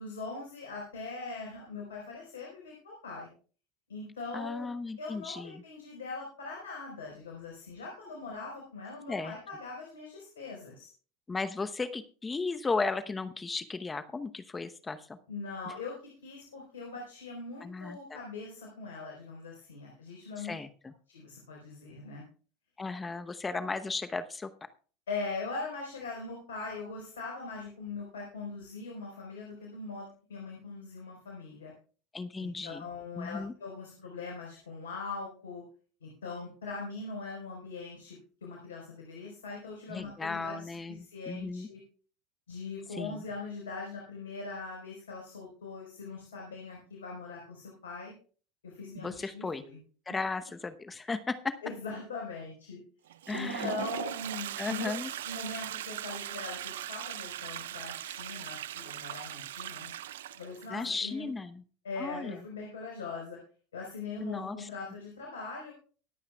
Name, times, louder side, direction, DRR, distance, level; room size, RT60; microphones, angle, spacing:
voice 1, 0.0-3.3 3.9-4.7 5.0-10.9 15.3-20.5 21.1-22.2 25.1-31.7 32.4-35.6 36.0-41.8 42.5-48.1 48.6-49.8 50.1-50.2 51.6-52.8 53.3-59.9 60.4-61.3 61.8-63.4 63.7-65.7, left 4 dB, 90° left, -1 dB, 4.3 m, -41 dB
voice 2, 4.3-5.6 9.1-9.4 11.3-15.2 17.6-18.2 20.4-20.9 22.8-24.5 32.1-32.8 33.2-33.5 39.9-41.7 42.9-43.2 49.0-49.6 50.1-51.5 53.3-53.7 54.6-55.1 60.7-61.6 62.0-62.4 64.2-64.7, left 3 dB, 20° left, 10 dB, 0.9 m, -35 dB
Toilet flush, 53.1-60.7, right 12 dB, 80° right, 0.5 m, -39 dB
23.5 x 8.4 x 2.3 m, 0.39 s
hypercardioid pair, 85°, 0 cm